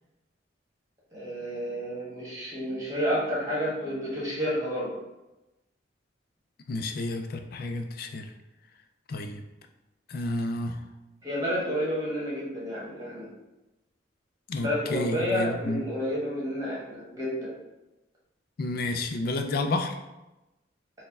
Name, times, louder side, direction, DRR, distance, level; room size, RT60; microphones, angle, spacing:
voice 1, 1.1-4.9 11.2-13.3 14.6-17.6, equal, 20° right, -6 dB, 1.3 m, -30 dB
voice 2, 6.7-8.3 9.1-9.4 10.1-10.8 14.5-15.8 18.6-20.0, left 2 dB, 50° left, 6 dB, 0.4 m, -30 dB
4.4 x 2.2 x 3.5 m, 0.99 s
head